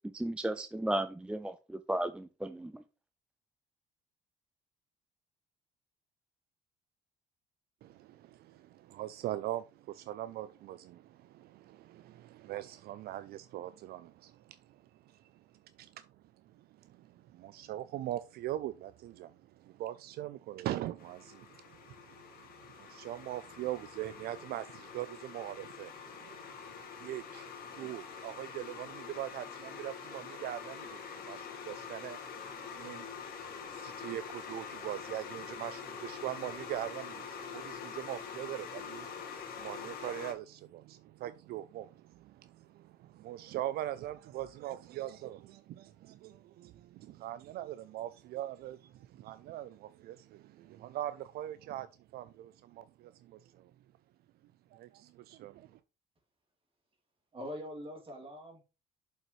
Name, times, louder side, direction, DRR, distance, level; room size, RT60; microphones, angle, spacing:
voice 1, 0.1-2.8, right 1 dB, 5° right, 0.4 m, -35 dB
voice 2, 7.8-16.1 16.5-39.2 39.6-51.9 52.1-53.7 54.7-55.8, right 13 dB, 70° right, 0.4 m, -42 dB
sound 1, 21.0-40.3, left 6 dB, 60° left, 1.8 m, -45 dB
voice 3, 57.3-58.6, equal, 35° right, 2.6 m, -43 dB
7.2 x 5.5 x 3.1 m
cardioid pair, 110°, 17 cm